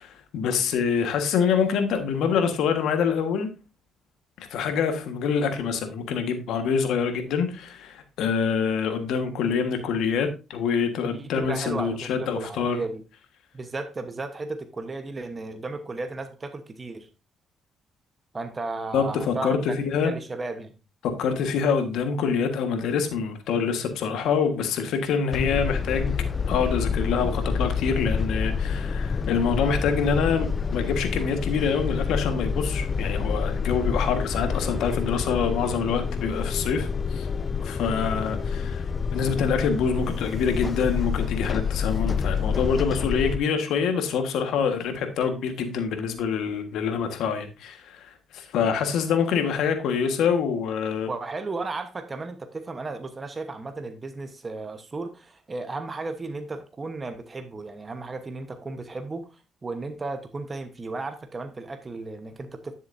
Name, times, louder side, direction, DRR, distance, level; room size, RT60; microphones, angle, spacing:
voice 1, 0.0-3.5 4.5-12.8 18.9-20.1 21.0-26.1 26.5-37.3 37.6-51.1, left 6 dB, 85° left, 1.5 m, -26 dB
voice 2, 11.0-13.0 13.5-17.1 18.3-19.7 20.0-20.7 51.1-62.7, right 3 dB, 30° right, 1.1 m, -34 dB
sound 1, 25.3-43.4, left 5 dB, 35° left, 0.4 m, -28 dB
10.0 x 7.4 x 2.7 m
cardioid pair, 90°, 0 cm